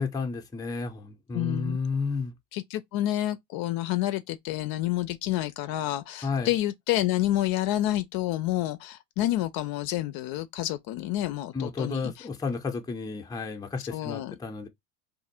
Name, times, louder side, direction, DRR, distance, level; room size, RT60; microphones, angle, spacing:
voice 1, 0.0-2.3 6.2-6.5 11.5-14.7, left 4 dB, 10° left, 0.6 m, -32 dB
voice 2, 1.3-1.8 2.5-12.3 13.8-14.4, left 14 dB, 55° left, 0.5 m, -29 dB
2.6 x 2.4 x 4.2 m
supercardioid pair, 115°, 44 cm